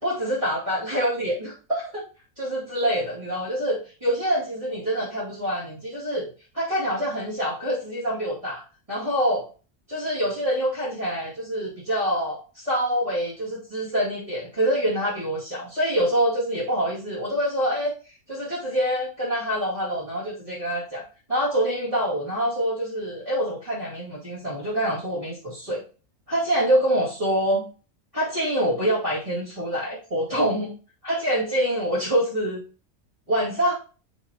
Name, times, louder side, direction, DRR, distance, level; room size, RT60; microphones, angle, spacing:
voice 1, 0.0-2.0 2.4-6.3 6.5-8.6 8.9-9.5 9.9-21.0 21.3-25.8 26.3-27.6 28.1-30.7 31.0-32.6 33.3-33.7, equal, 25° right, -11 dB, 2.6 m, -25 dB
8.3 x 5.8 x 2.9 m, 0.37 s
omnidirectional pair, 1.3 m